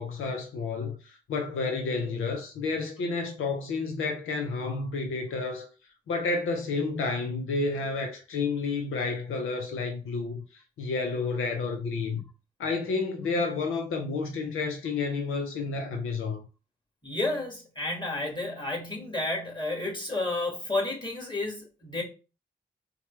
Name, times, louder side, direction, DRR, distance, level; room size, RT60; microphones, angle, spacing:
voice 1, 0.0-5.7 6.1-12.2 12.6-16.4, left 4 dB, 85° left, 0.6 m, -30 dB
voice 2, 17.0-22.0, left 2 dB, 20° left, 2.0 m, -31 dB
4.2 x 2.2 x 3.3 m
supercardioid pair, 45°, 20 cm